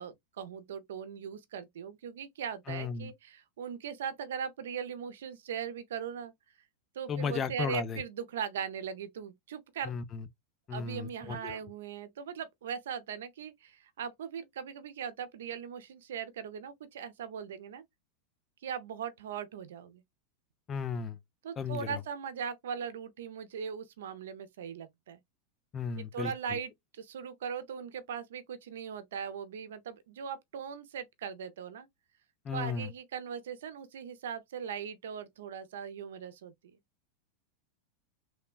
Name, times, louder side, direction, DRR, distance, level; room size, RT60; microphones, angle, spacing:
voice 1, 0.0-6.3 6.9-9.9 10.7-17.8 18.6-20.0 21.4-25.2 26.0-31.9 32.5-36.5, right 7 dB, 85° right, 0.4 m, -39 dB
voice 2, 2.7-3.1 7.1-8.0 9.9-10.2 10.7-11.6 20.7-21.2 21.6-22.0 25.7-26.3 32.5-32.9, left 6 dB, 30° left, 0.4 m, -35 dB
3.1 x 2.1 x 2.2 m
hypercardioid pair, 120°, 0 cm